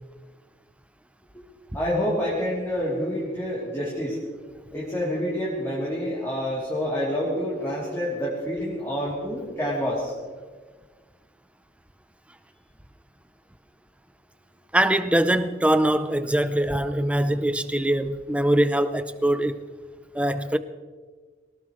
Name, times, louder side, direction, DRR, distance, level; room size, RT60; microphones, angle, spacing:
voice 1, 1.7-4.2 4.7-10.1, equal, 15° left, 3.2 m, -27 dB
voice 2, 14.7-19.6 20.1-20.6, right 1 dB, 5° right, 0.6 m, -22 dB
22.5 x 19.0 x 3.2 m
head